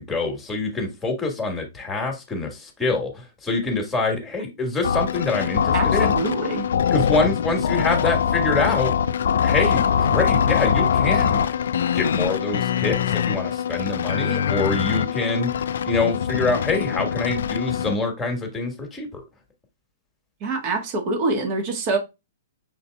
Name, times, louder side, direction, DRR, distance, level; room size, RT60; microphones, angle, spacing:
voice 1, 0.0-6.1 6.9-8.9 9.4-11.4 11.9-19.2, left 3 dB, 10° left, 1.6 m, -25 dB
sound 1, 4.8-18.0, left 8 dB, 60° left, 0.3 m, -23 dB
voice 2, 5.7-6.7 20.4-22.0, right 3 dB, 35° right, 1.4 m, -25 dB
6.0 x 3.9 x 2.3 m
figure-of-eight pair, 110°, 0 cm